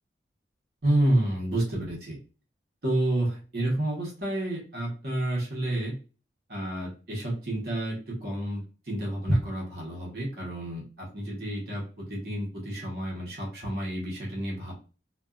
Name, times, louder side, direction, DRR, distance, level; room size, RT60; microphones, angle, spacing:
voice 1, 0.8-2.2 2.8-6.0 6.5-14.8, right 1 dB, 60° right, -4 dB, 1.1 m, -29 dB
2.5 x 2.3 x 2.3 m, 0.35 s
head